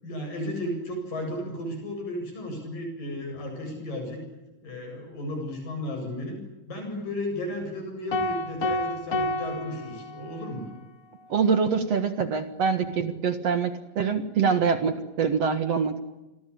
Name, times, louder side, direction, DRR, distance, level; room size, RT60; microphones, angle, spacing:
voice 1, 0.0-4.2 4.6-6.4 6.7-10.7, left 1 dB, 75° left, 4 dB, 9.6 m, -34 dB
sound 1, 8.1-10.6, left 2 dB, 40° left, 1.2 m, -29 dB
voice 2, 11.3-16.0, right 6 dB, 55° right, 10 dB, 2.4 m, -25 dB
29.5 x 22.0 x 8.7 m, 1.0 s
omnidirectional pair, 3.9 m